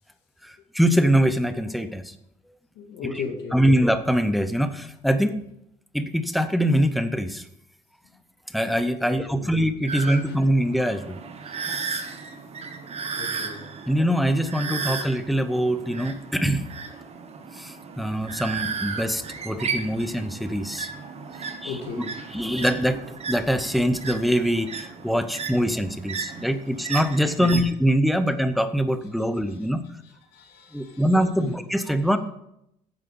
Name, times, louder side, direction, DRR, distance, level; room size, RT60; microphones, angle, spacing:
voice 1, 0.4-2.2 3.1-3.2 3.5-5.3 5.9-7.4 8.5-11.2 11.8-12.0 13.9-16.6 17.5-20.9 21.4-21.8 22.3-29.8 30.7-32.2, equal, ahead, 10 dB, 0.8 m, -23 dB
voice 2, 2.8-3.8 9.0-9.5 13.2-13.6 21.6-22.1 27.4-27.5 30.3-31.0 31.4-31.5, left 5 dB, 85° left, 1 dB, 2.1 m, -35 dB
sound 1, 9.9-27.7, right 5 dB, 40° right, 1.2 m, -35 dB
10.5 x 7.5 x 5.4 m, 0.79 s
cardioid pair, 110°, 17 cm